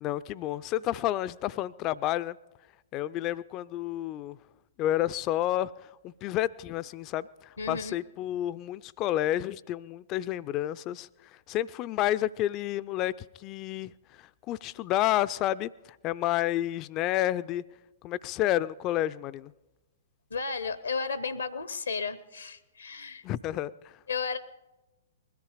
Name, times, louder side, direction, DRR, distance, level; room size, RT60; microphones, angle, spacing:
voice 1, 0.0-2.4 2.9-4.4 4.8-11.1 11.5-13.9 14.2-15.7 16.0-17.6 18.0-19.5 23.2-23.9, left 13 dB, 30° left, 0.5 m, -30 dB
voice 2, 7.6-8.0 20.3-23.2 24.1-24.4, left 5 dB, 75° left, 0.8 m, -33 dB
21.0 x 14.0 x 5.0 m
figure-of-eight pair, 115°, 0 cm